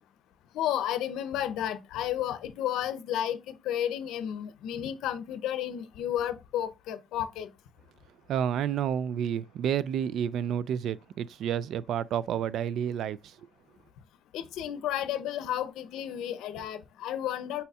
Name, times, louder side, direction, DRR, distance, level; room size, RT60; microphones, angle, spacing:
voice 1, 0.5-7.5 14.3-17.6, left 11 dB, 90° left, 0.6 m, -32 dB
voice 2, 8.3-13.3, right 9 dB, 75° right, 0.3 m, -30 dB
5.5 x 4.1 x 2.4 m
cardioid pair, 90°, 0 cm